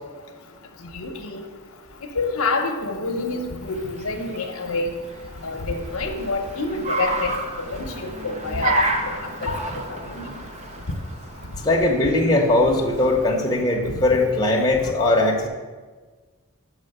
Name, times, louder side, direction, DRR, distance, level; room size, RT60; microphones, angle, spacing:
voice 1, 0.9-1.4 2.1-4.9 5.4-7.3 7.6-8.8 9.2-9.5 10.1-10.3, left 3 dB, 75° left, 3 dB, 0.9 m, -27 dB
Car, 3.3-13.5, right 2 dB, 30° right, 0.7 m, -31 dB
voice 2, 11.6-15.5, left 2 dB, 20° left, -1 dB, 1.0 m, -20 dB
6.1 x 5.2 x 6.6 m, 1.4 s
head